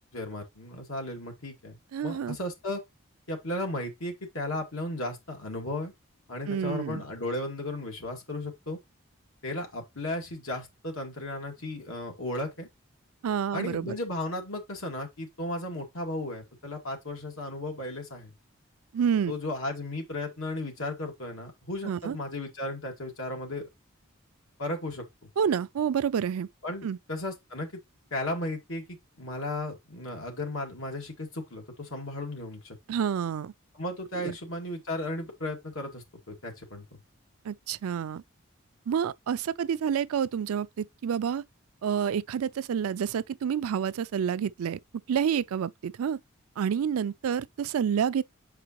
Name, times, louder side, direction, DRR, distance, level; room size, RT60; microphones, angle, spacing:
voice 1, 0.1-2.8 3.3-5.9 6.3-8.8 9.4-12.7 13.5-18.3 19.3-23.7 24.6-25.0 26.6-27.7 28.1-32.8 33.7-37.0, left 1 dB, 75° left, 2.1 m, -35 dB
voice 2, 1.9-2.4 6.5-7.0 13.2-13.9 18.9-19.3 21.8-22.2 25.4-26.5 26.8-27.0 32.9-33.5 34.1-34.3 37.4-38.2 38.9-41.4 41.8-44.8 45.1-46.2 46.6-48.2, right 8 dB, 85° right, 0.4 m, -28 dB
7.5 x 4.9 x 2.9 m
head